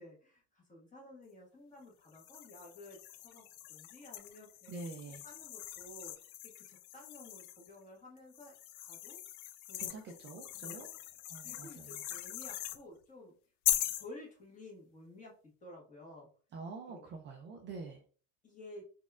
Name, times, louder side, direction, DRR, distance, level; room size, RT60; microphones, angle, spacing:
voice 1, 0.0-3.0 3.2-4.7 5.2-6.1 6.5-9.2 9.7-9.8 10.6-10.9 11.4-13.3 13.9-15.3 15.6-16.3 16.9-17.0 18.4-18.9, left 1 dB, 20° left, -2 dB, 1.5 m, -53 dB
sound 1, 2.1-7.7 8.3-12.8 13.6-14.1, left 14 dB, 75° left, 0.5 m, -40 dB
voice 2, 4.7-5.2 9.8-10.9 11.3-12.0 16.5-18.0, right 3 dB, 25° right, 2 dB, 0.5 m, -46 dB
4.0 x 3.6 x 2.4 m, 0.41 s
supercardioid pair, 140°, 42 cm